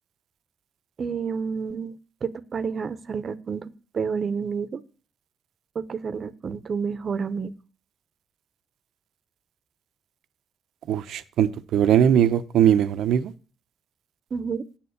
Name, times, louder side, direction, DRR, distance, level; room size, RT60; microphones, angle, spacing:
voice 1, 1.0-3.7 3.9-4.8 5.7-7.5 14.3-14.6, right 5 dB, 45° right, 0.7 m, -29 dB
voice 2, 10.9-13.3, right 9 dB, 80° right, 0.6 m, -20 dB
7.6 x 7.1 x 6.5 m
cardioid pair, 90°, 0 cm